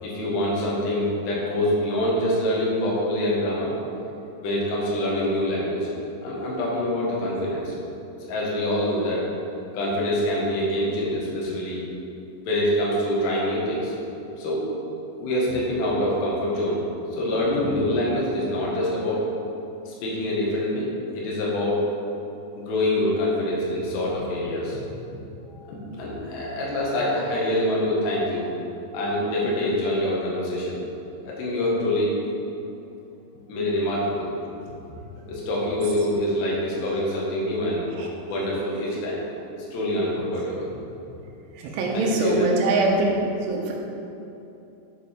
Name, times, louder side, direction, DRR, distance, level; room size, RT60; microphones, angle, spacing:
voice 1, 0.0-3.7 4.4-5.9 6.2-7.7 8.2-9.3 9.7-11.8 12.4-13.9 14.4-14.6 15.2-16.8 17.1-19.2 19.9-21.8 22.6-24.8 25.5-28.5 28.9-30.8 31.3-32.1 33.5-34.3 35.3-37.8 38.3-39.2 39.5-40.8 41.9-42.6, left 1 dB, 70° left, -5 dB, 3.6 m, -25 dB
voice 2, 41.8-42.9 43.5-43.7, right 3 dB, 90° right, -1 dB, 3.5 m, -22 dB
12.0 x 5.3 x 4.5 m, 2.9 s
omnidirectional pair, 5.4 m